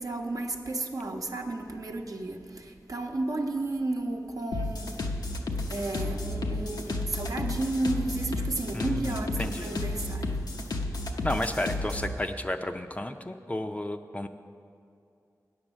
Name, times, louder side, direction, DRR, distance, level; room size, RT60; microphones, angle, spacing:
voice 1, 0.0-5.0 5.7-10.4, right 2 dB, 60° right, 3 dB, 0.8 m, -33 dB
sound 1, 4.5-12.1, left 2 dB, 85° left, 0.7 m, -32 dB
voice 2, 8.7-9.8 11.2-14.3, left 1 dB, 20° left, 6 dB, 0.5 m, -32 dB
9.6 x 7.3 x 6.3 m, 2.4 s
wide cardioid pair, 50°, 7 cm